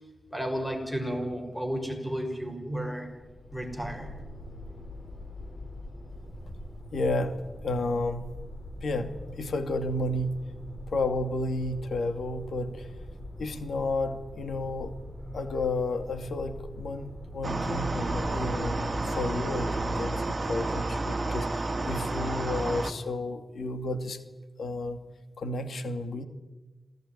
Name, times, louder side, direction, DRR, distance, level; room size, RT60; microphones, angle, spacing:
voice 1, 0.3-3.1 3.5-4.1, equal, 5° left, 5 dB, 5.9 m, -32 dB
sound 1, 3.1-20.1, left 1 dB, 30° left, 6.0 m, -43 dB
voice 2, 6.9-7.4 7.6-8.3 8.8-10.4 10.9-12.9 13.4-15.0 15.3-24.2 24.6-25.0 25.4-26.3, left 2 dB, 90° left, 8 dB, 2.4 m, -32 dB
sound 2, 17.4-22.9, right 2 dB, 35° right, 2.1 m, -30 dB
27.0 x 17.5 x 9.9 m, 1.1 s
wide cardioid pair, 100°, 0 cm